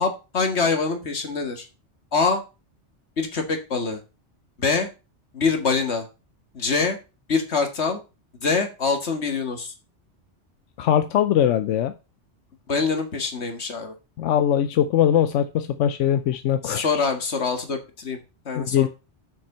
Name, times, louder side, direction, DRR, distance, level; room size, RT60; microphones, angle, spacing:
voice 1, 0.0-1.7 2.1-2.4 3.2-4.0 4.6-4.9 5.3-6.1 6.5-7.0 7.3-8.0 8.4-9.7 12.7-14.0 16.6-18.2 18.5-18.9, left 4 dB, 65° left, 5 dB, 2.0 m, -24 dB
voice 2, 10.8-11.9 14.2-17.0 18.6-18.9, left 10 dB, 90° left, 10 dB, 1.0 m, -21 dB
7.3 x 6.0 x 5.5 m, 0.29 s
omnidirectional pair, 1.2 m